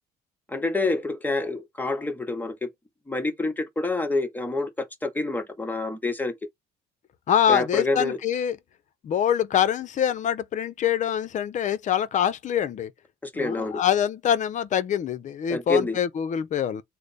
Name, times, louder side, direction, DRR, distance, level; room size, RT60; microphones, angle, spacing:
voice 1, 0.5-2.7 3.1-6.3 7.5-8.2 13.2-13.8 15.5-16.0, left 2 dB, 10° left, 0.9 m, -27 dB
voice 2, 7.3-8.6 9.0-12.9 13.3-16.8, left 9 dB, 45° left, 0.6 m, -24 dB
3.3 x 2.1 x 4.0 m
cardioid pair, 110°, 17 cm